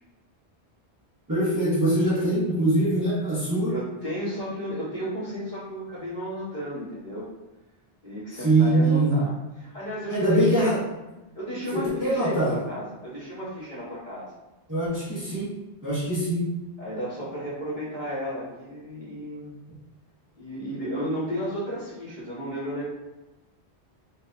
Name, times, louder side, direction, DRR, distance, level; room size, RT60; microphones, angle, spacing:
voice 1, 1.3-3.7 8.4-9.2 10.1-10.8 11.7-12.6 14.7-15.5 15.8-16.4, right 1 dB, 20° right, -11 dB, 1.1 m, -23 dB
voice 2, 3.7-7.3 8.0-10.7 11.3-14.3 16.8-19.5 20.4-22.9, equal, 45° left, -11 dB, 1.7 m, -33 dB
4.0 x 2.9 x 2.3 m, 1.1 s
omnidirectional pair, 1.1 m